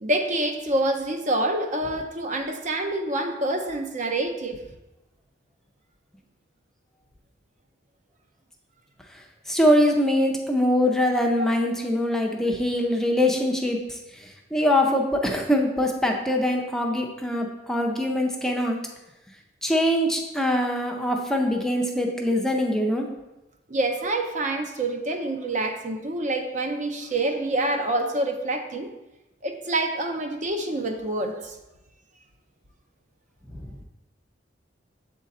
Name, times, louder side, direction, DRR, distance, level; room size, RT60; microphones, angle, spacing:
voice 1, 0.0-4.6 23.7-28.9 29.4-31.5, right 2 dB, 40° right, 4 dB, 0.6 m, -27 dB
voice 2, 9.5-18.8 19.6-23.1 33.5-33.7, left 1 dB, 5° left, 1 dB, 0.5 m, -23 dB
7.4 x 3.7 x 4.2 m, 0.99 s
head